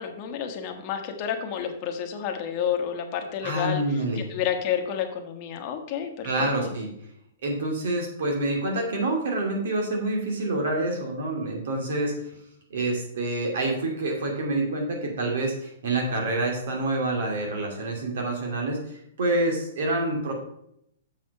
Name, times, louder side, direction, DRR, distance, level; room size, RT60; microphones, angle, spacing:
voice 1, 0.0-6.7, left 8 dB, 30° left, 4 dB, 1.2 m, -30 dB
voice 2, 3.4-4.3 6.2-6.9 7.4-12.1 12.7-20.3, right 2 dB, 65° right, 1 dB, 2.5 m, -27 dB
7.6 x 5.6 x 5.4 m, 0.74 s
hypercardioid pair, 165°, 0 cm